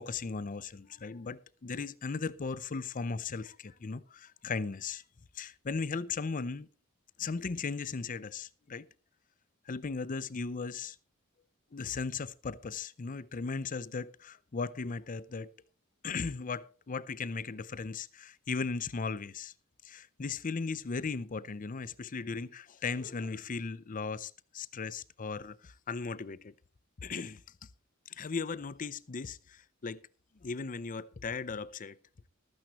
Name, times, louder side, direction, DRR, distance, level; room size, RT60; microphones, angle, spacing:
voice 1, 0.0-5.0 5.3-6.7 7.2-8.9 9.7-11.0 11.7-15.5 16.0-19.5 19.8-26.5 27.0-27.4 28.1-30.0 30.4-32.0, left 4 dB, 40° left, 0.5 m, -37 dB
15.0 x 13.0 x 3.0 m
head